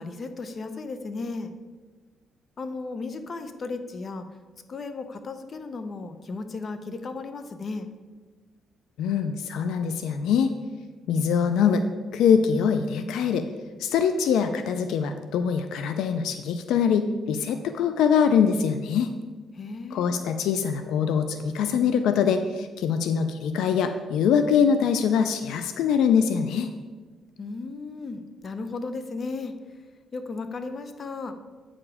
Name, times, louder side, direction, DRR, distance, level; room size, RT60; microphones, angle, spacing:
voice 1, 0.0-1.5 2.6-4.3 4.7-7.9 19.5-20.2 27.4-29.6 30.1-31.3, left 3 dB, 45° left, 9 dB, 0.7 m, -35 dB
voice 2, 9.0-10.5 11.1-11.8 12.1-13.4 13.8-19.1 19.9-26.7, left 7 dB, 85° left, 8 dB, 0.4 m, -23 dB
8.6 x 4.9 x 4.8 m, 1.4 s
cardioid pair, 90°, 0 cm